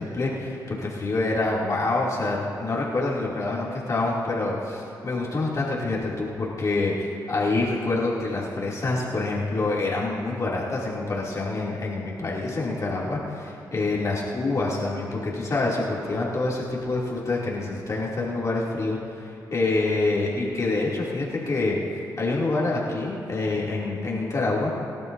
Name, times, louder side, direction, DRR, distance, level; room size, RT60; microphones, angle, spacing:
voice 1, 0.0-21.8 22.2-24.7, left 2 dB, 45° left, -5 dB, 2.7 m, -26 dB
22.5 x 12.0 x 2.7 m, 2.9 s
cardioid pair, 65°, 8 cm